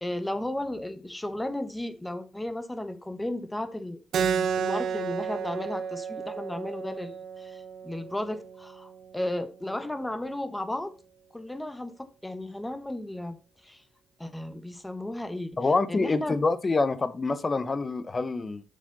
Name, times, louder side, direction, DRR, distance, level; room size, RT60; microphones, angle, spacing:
voice 1, 0.0-10.9 11.3-13.4 13.6-13.8 14.2-16.4, left 1 dB, 10° left, 1.2 m, -34 dB
Keyboard (musical), 4.1-9.2, right 7 dB, 65° right, 0.9 m, -32 dB
voice 2, 15.6-18.6, left 3 dB, 30° left, 0.8 m, -26 dB
7.3 x 6.7 x 3.9 m
cardioid pair, 90°, 0 cm